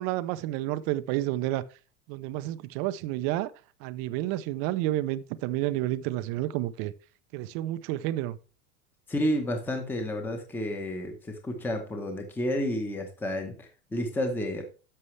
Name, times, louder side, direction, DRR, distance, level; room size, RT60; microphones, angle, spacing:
voice 1, 0.0-1.6 2.1-3.5 3.8-6.9 7.3-8.4, right 15 dB, 40° right, 0.5 m, -30 dB
voice 2, 9.1-14.7, equal, 5° left, 0.9 m, -31 dB
11.0 x 6.8 x 3.2 m
supercardioid pair, 155°, 36 cm